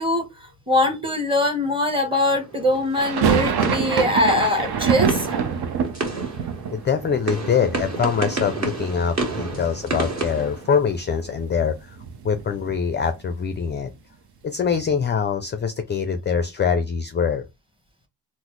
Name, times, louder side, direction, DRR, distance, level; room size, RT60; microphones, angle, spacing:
voice 1, 0.0-5.4 9.5-9.6, left 1 dB, 10° right, 1.2 m, -22 dB
sound 1, 2.2-11.3, right 3 dB, 40° right, 1.6 m, -31 dB
sound 2, 2.9-8.9 9.1-10.0 10.3-10.4 10.6-12.8, right 7 dB, 60° right, 0.7 m, -26 dB
voice 2, 6.7-12.0 12.2-13.9 14.4-17.4, left 6 dB, 25° left, 0.4 m, -24 dB
3.9 x 2.1 x 3.1 m
cardioid pair, 85°, 43 cm